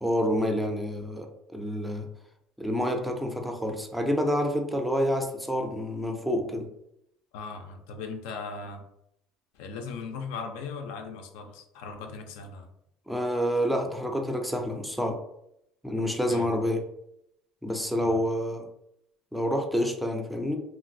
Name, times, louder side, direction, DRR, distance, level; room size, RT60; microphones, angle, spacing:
voice 1, 0.0-2.1 2.6-6.7 13.1-15.2 15.8-16.8 17.6-18.7 19.3-20.6, equal, ahead, 3 dB, 0.3 m, -28 dB
voice 2, 7.3-8.9 9.5-12.7 16.3-16.5 18.0-18.2, left 4 dB, 90° left, 5 dB, 0.4 m, -38 dB
3.1 x 2.5 x 2.6 m, 0.80 s
cardioid pair, 145°, 0 cm